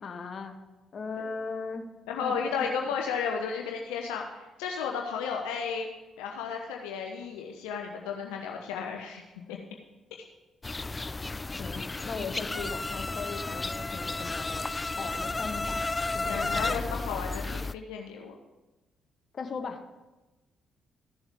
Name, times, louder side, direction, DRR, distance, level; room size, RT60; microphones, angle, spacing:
voice 1, 0.0-0.6 0.9-1.9 2.2-2.7 11.6-15.8 16.1-16.8 19.3-19.8, left 4 dB, 50° left, 6 dB, 1.2 m, -38 dB
voice 2, 2.1-5.9 6.2-9.2 9.5-9.6 16.2-18.3, left 6 dB, 80° left, 1 dB, 0.8 m, -33 dB
sound 1, 10.6-17.7, left 3 dB, 25° left, 0.3 m, -33 dB
14.5 x 7.1 x 3.6 m, 1.1 s
hypercardioid pair, 45°, 0 cm